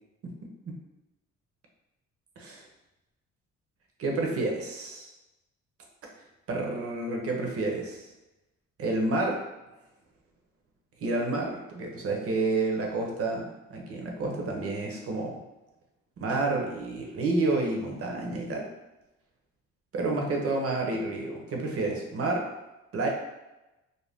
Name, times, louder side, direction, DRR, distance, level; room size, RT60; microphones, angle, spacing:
voice 1, 0.4-0.8 2.4-2.6 4.0-5.1 6.5-8.1 8.8-9.4 11.0-15.4 16.2-18.7 19.9-22.5 22.9-23.1, right 2 dB, 50° right, 0 dB, 0.7 m, -29 dB
2.6 x 2.1 x 3.4 m, 1.0 s
cardioid pair, 90°, 30 cm